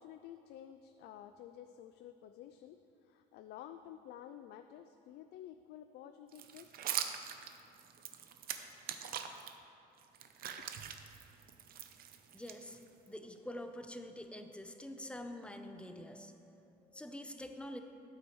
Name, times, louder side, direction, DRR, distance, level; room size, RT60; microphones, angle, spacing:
voice 1, 0.0-6.8 10.6-10.7, left 10 dB, 75° left, 9 dB, 0.4 m, -52 dB
sound 1, 6.3-9.5 10.0-13.1, right 9 dB, 60° right, 0.7 m, -42 dB
voice 2, 12.3-12.8 13.1-17.8, left 1 dB, 5° left, 6 dB, 0.6 m, -46 dB
13.5 x 8.7 x 3.2 m, 2.7 s
cardioid pair, 110°, 17 cm